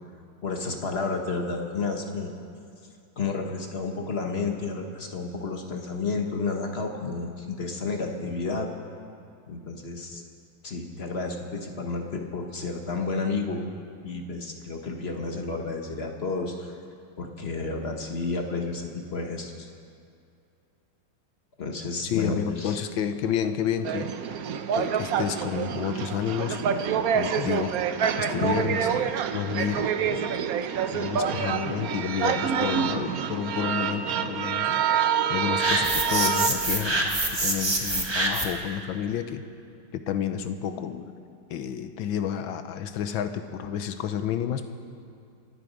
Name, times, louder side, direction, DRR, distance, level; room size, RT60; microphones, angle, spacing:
voice 1, 0.4-2.3 3.2-8.7 9.5-10.2 10.6-13.6 14.0-16.7 17.2-19.7 21.6-22.8, left 3 dB, 35° left, 3 dB, 1.2 m, -31 dB
voice 2, 22.0-24.1 24.8-26.7 27.1-27.8 28.2-30.4 30.9-34.8 35.3-39.4 39.9-41.1 41.5-44.7, left 9 dB, 70° left, 9 dB, 1.5 m, -30 dB
sound 1, 23.9-36.5, right 7 dB, 70° right, 0.8 m, -27 dB
sound 2, 35.6-38.7, right 2 dB, 15° right, 1.0 m, -26 dB
27.0 x 9.4 x 5.2 m, 2.5 s
omnidirectional pair, 2.3 m